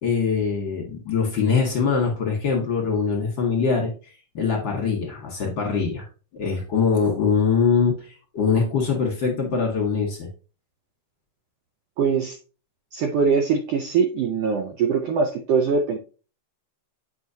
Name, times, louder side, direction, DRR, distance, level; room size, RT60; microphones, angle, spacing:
voice 1, 0.0-3.9 4.3-6.1 6.4-10.3, left 5 dB, 55° left, 0 dB, 1.5 m, -23 dB
voice 2, 12.0-12.4 12.9-16.0, right 5 dB, 80° right, 6 dB, 1.4 m, -22 dB
7.7 x 5.2 x 2.7 m, 0.36 s
omnidirectional pair, 3.4 m